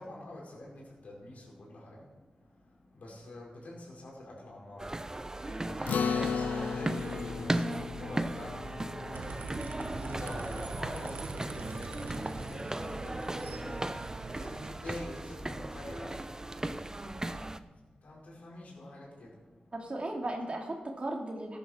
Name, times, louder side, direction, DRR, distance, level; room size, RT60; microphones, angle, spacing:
voice 1, 0.0-19.7, left 1 dB, 70° left, -4 dB, 4.9 m, -47 dB
sound 1, 4.8-17.6, right 1 dB, 20° right, 0.6 m, -37 dB
voice 2, 5.4-5.9 16.8-17.4 19.7-21.6, right 1 dB, 45° right, 1 dB, 2.4 m, -38 dB
Acoustic guitar, 5.9-10.6, left 6 dB, 85° left, 0.4 m, -36 dB
sound 2, 9.1-14.7, right 4 dB, 85° right, 0.8 m, -43 dB
14.0 x 10.5 x 4.4 m, 1.2 s
cardioid pair, 45°, 3 cm